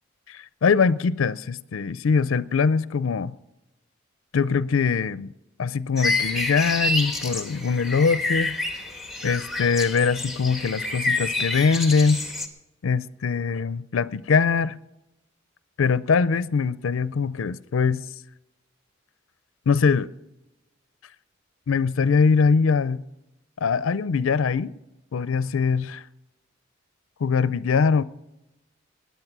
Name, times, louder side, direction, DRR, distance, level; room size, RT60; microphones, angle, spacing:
voice 1, 0.3-3.3 4.3-5.3 5.6-8.6 9.2-12.2 12.8-14.8 15.8-18.1 19.7-20.1 21.7-23.0 23.6-24.7 25.1-26.0 27.2-28.0, left 5 dB, 75° left, 0.4 m, -22 dB
sound 1, 6.0-12.5, left 2 dB, ahead, 1.4 m, -28 dB
19.0 x 9.5 x 6.0 m
head